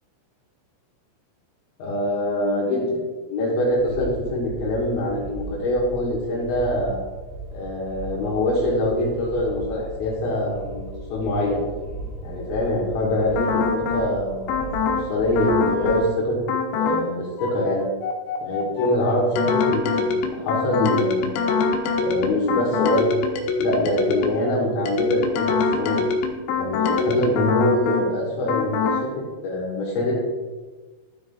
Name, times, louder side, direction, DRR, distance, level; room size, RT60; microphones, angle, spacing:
voice 1, 1.8-3.0 3.3-7.0 7.5-10.8 11.1-11.6 12.2-16.4 16.8-17.8 18.4-21.5 22.0-23.1 23.6-25.5 25.8-26.0 26.5-29.1 29.4-30.2, left 1 dB, 65° left, -4 dB, 3.7 m, -24 dB
sound 1, 3.7-16.0, right 3 dB, 70° right, 4.2 m, -37 dB
sound 2, 13.4-14.1 14.5-15.1 15.4-16.1 16.5-17.1 17.4-24.5 24.9-28.1 28.5-29.1, left 5 dB, 90° left, 3.5 m, -24 dB
13.0 x 4.8 x 3.7 m, 1.3 s
omnidirectional pair, 5.9 m